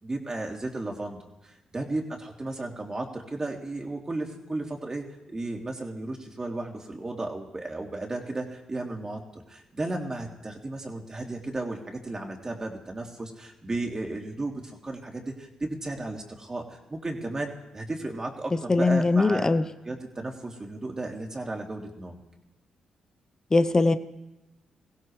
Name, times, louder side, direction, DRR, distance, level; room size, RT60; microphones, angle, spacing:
voice 1, 0.0-19.5 19.8-22.2, right 2 dB, 30° right, 3.0 m, -34 dB
voice 2, 18.7-19.6 23.5-24.0, left 3 dB, 25° left, 0.8 m, -21 dB
22.5 x 16.0 x 3.3 m
supercardioid pair, 55°, 2 cm